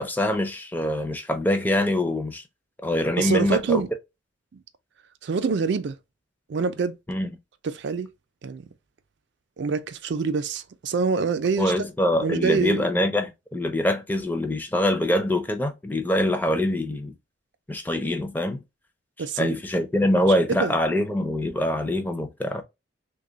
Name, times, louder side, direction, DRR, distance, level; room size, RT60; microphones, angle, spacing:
voice 1, 0.0-2.4 2.8-3.8 7.1-7.3 11.6-17.1 17.7-18.6 19.4-22.6, left 1 dB, 10° left, 0.4 m, -24 dB
voice 2, 3.2-3.9 5.2-6.0 6.5-7.0 7.6-8.1 8.4-8.7 9.6-11.7 12.2-12.8 19.2-19.5 20.3-20.7, right 5 dB, 60° right, 0.4 m, -25 dB
3.3 x 2.2 x 3.8 m
head